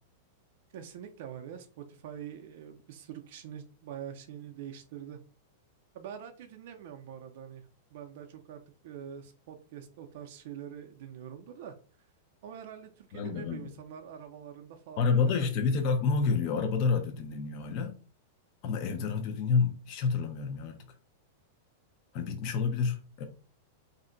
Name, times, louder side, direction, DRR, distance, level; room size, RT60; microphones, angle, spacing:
voice 1, 0.7-5.2 5.9-7.7 7.9-11.7 12.4-15.6, right 9 dB, 60° right, 0.4 m, -45 dB
voice 2, 13.1-13.7 15.0-17.9 18.6-20.8 22.1-23.2, left 5 dB, 40° left, 0.5 m, -29 dB
2.6 x 2.1 x 3.8 m
supercardioid pair, 155°, 0 cm